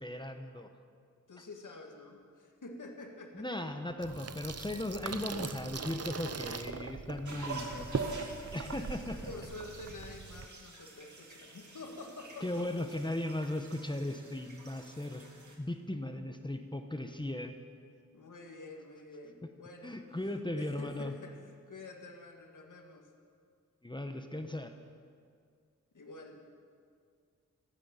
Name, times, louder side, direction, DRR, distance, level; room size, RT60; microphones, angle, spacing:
voice 1, 0.0-0.7 3.3-8.2 8.5-9.3 12.4-15.2 15.6-17.5 19.8-21.1 23.8-24.7, left 1 dB, 15° left, 6 dB, 0.9 m, -37 dB
voice 2, 1.3-3.6 9.1-12.7 18.1-20.0 20.3-23.1 25.9-26.4, left 2 dB, 80° left, 2 dB, 1.9 m, -48 dB
Water tap faucet / Sink (filling or washing), 4.0-10.5, right 5 dB, 55° right, 0.7 m, -41 dB
sound 1, 7.2-15.6, right 3 dB, 70° right, 2.2 m, -46 dB
14.5 x 9.8 x 8.8 m, 2.2 s
wide cardioid pair, 70°, 30 cm